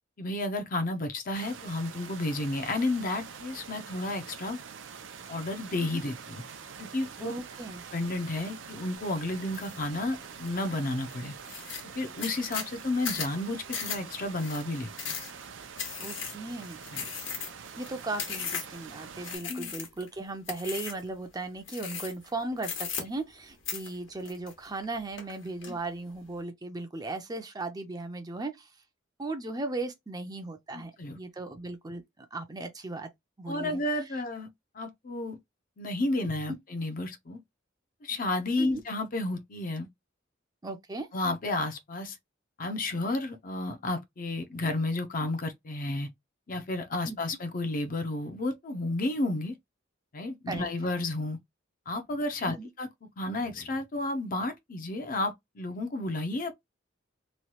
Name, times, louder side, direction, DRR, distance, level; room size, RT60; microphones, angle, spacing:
voice 1, 0.2-4.6 5.3-6.4 6.8-7.3 7.9-11.3 11.9-15.2 16.9-17.0 19.4-19.7 25.6-25.8 30.7-31.2 33.5-34.5 34.7-35.4 35.8-37.4 38.0-39.9 41.1-42.2 42.6-46.1 46.5-49.6 50.1-51.4 51.9-52.9 53.2-56.5, left 2 dB, 45° left, 0.6 m, -32 dB
sound 1, 1.3-19.4, right 6 dB, 75° right, 0.5 m, -45 dB
voice 2, 7.2-7.8 16.0-16.8 17.8-28.7 29.2-33.1 33.4-33.8 38.6-38.8 40.6-41.1 47.0-47.2 50.5-50.6 52.5-52.7, right 2 dB, 20° right, 0.5 m, -37 dB
sound 2, 9.5-9.8 10.2-10.7 11.1-11.2 11.4-18.8 19.2-20.1 20.5-21.1 21.7-22.3 22.6-23.4 23.7-24.8 25.2-25.7, left 6 dB, 85° left, 1.3 m, -37 dB
3.1 x 2.3 x 2.8 m
head